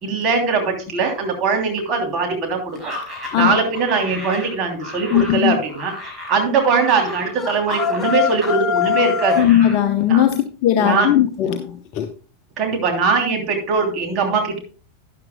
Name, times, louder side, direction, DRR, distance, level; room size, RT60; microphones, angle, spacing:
voice 1, 0.0-2.9 3.3-5.9 6.3-9.4 10.1-10.2 10.8-11.1 12.6-14.6, right 4 dB, 35° right, 2 dB, 2.9 m, -21 dB
sound 1, 2.7-8.6 8.8-9.8, left 1 dB, 15° right, 4.9 m, -34 dB
voice 2, 5.1-5.6 9.4-12.1, left 11 dB, 40° left, 7 dB, 0.8 m, -18 dB
sound 2, 7.4-9.5, left 7 dB, 5° left, 1.9 m, -21 dB
12.0 x 10.5 x 2.2 m, 0.38 s
figure-of-eight pair, 90°, 0 cm